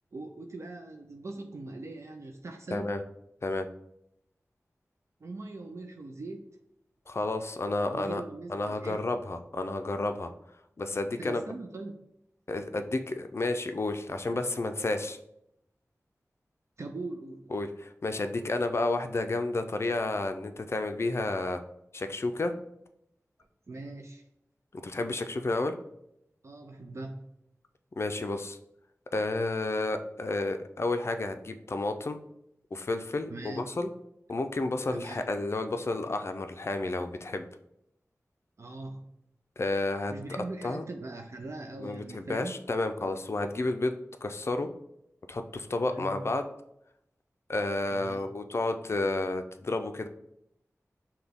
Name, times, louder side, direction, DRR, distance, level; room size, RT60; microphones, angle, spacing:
voice 1, 0.1-2.9 5.2-6.6 7.9-9.0 11.2-12.0 16.8-17.5 23.7-24.2 26.4-27.2 33.3-33.7 34.9-35.2 38.6-39.1 40.1-42.5 45.8-46.2 47.9-48.2, right 2 dB, 55° right, 4 dB, 0.4 m, -41 dB
voice 2, 7.1-8.2 8.5-10.3 10.8-11.4 12.5-15.2 17.5-21.6 21.9-22.5 24.8-25.7 27.9-28.6 29.1-32.2 32.7-33.9 34.3-37.5 39.6-40.1 40.6-40.8 41.8-44.7 45.3-46.5 47.5-50.1, left 2 dB, 50° left, 7 dB, 0.4 m, -31 dB
5.8 x 2.2 x 3.5 m, 0.79 s
wide cardioid pair, 60°, 6 cm